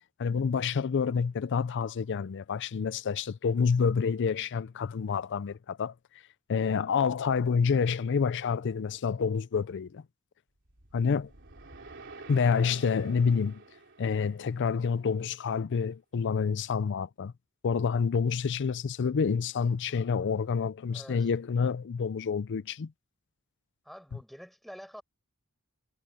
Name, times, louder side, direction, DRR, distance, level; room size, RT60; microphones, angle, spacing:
voice 1, 0.2-5.9 6.5-10.0 10.9-11.3 12.3-13.6 14.0-17.3 17.6-22.9, left 6 dB, 55° left, 0.4 m, -28 dB
sound 1, 10.6-15.0, right 3 dB, 60° right, 3.6 m, -50 dB
voice 2, 20.9-21.3 23.8-25.0, equal, ahead, 5.5 m, -47 dB
head